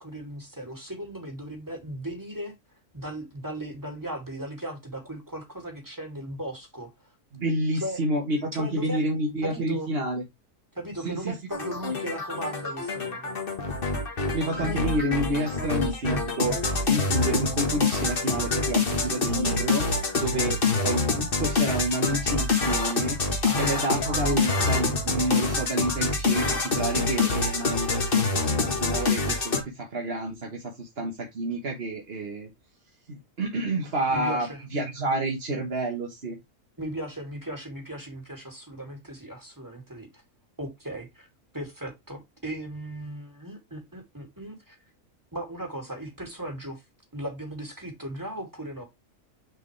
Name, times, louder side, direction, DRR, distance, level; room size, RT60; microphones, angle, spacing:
voice 1, 0.0-2.5 2.9-7.1 7.8-8.0 8.5-9.0 9.4-9.9 10.7-13.4 20.2-20.6 23.4-23.9 34.1-34.6 36.8-40.2 40.6-41.3 41.5-44.8 45.3-46.8 47.1-48.8, right 1 dB, 15° right, 2.4 m, -37 dB
voice 2, 7.3-10.2 11.0-11.3 14.3-19.8 20.1-32.5 33.1-36.4, right 1 dB, 50° right, 1.5 m, -29 dB
sound 1, 11.5-29.6, left 3 dB, 45° left, 1.7 m, -26 dB
6.4 x 4.9 x 3.2 m
omnidirectional pair, 1.4 m